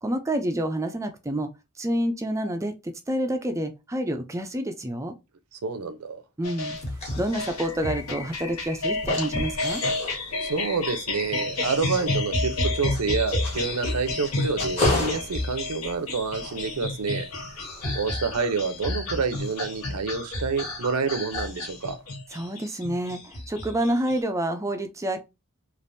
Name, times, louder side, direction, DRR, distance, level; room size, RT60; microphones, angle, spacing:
voice 1, 0.0-1.5 1.8-5.1 6.4-6.8 7.2-9.8 22.3-25.2, right 1 dB, 15° right, 0.4 m, -28 dB
voice 2, 5.5-6.2 10.4-17.3 17.9-22.0, right 4 dB, 80° right, 0.6 m, -28 dB
sound 1, 6.4-24.2, left 2 dB, 75° left, 1.4 m, -30 dB
sound 2, 6.7-21.0 21.3-21.9, left 2 dB, 30° left, 1.3 m, -36 dB
3.4 x 2.5 x 2.6 m
head